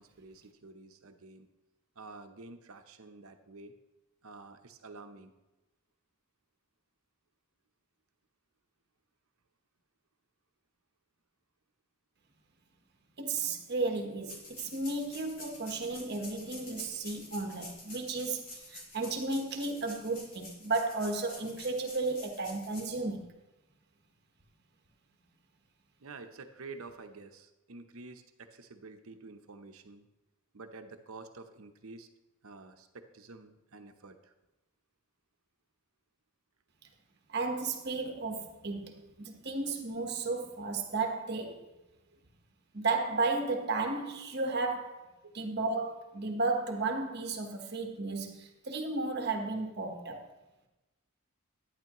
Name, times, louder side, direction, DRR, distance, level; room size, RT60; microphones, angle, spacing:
voice 1, 0.0-1.5 2.0-3.8 4.2-5.3 26.0-30.1 30.5-32.1 32.4-34.3 45.2-45.3, right 3 dB, 75° right, 0.8 m, -49 dB
voice 2, 13.2-23.3 37.3-41.7 42.7-45.1 45.3-50.2, right 3 dB, 50° right, 1.2 m, -34 dB
sound 1, 14.2-22.8, left 2 dB, 75° left, 3.0 m, -49 dB
11.0 x 9.9 x 3.0 m
head